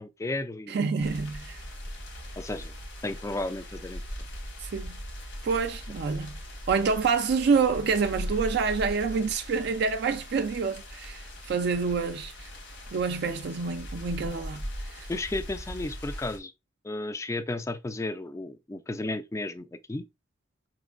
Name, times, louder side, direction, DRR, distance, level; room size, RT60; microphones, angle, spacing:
voice 1, 0.0-0.8 2.4-2.7 3.0-4.0 15.1-16.5 16.8-20.0, left 2 dB, 15° left, 0.3 m, -33 dB
voice 2, 0.7-1.6 4.6-5.0 5.4-6.3 6.7-12.5 12.9-14.6 15.0-15.1, right 5 dB, 55° right, 0.4 m, -27 dB
sound 1, 1.0-16.4, equal, 80° left, 1.5 m, -40 dB
5.1 x 3.0 x 2.4 m
head